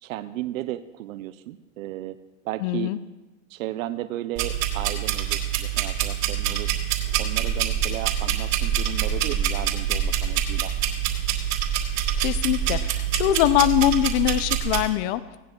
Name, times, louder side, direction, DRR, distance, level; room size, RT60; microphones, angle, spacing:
voice 1, 0.0-2.2 2.4-2.9 3.5-6.7 7.2-10.7, right 14 dB, 90° right, 11 dB, 0.6 m, -34 dB
voice 2, 2.6-3.0 12.2-15.4, left 14 dB, 70° left, 14 dB, 0.6 m, -23 dB
sound 1, 4.4-14.8, right 10 dB, 65° right, 2.8 m, -25 dB
18.0 x 10.5 x 3.0 m, 1.1 s
supercardioid pair, 130°, 39 cm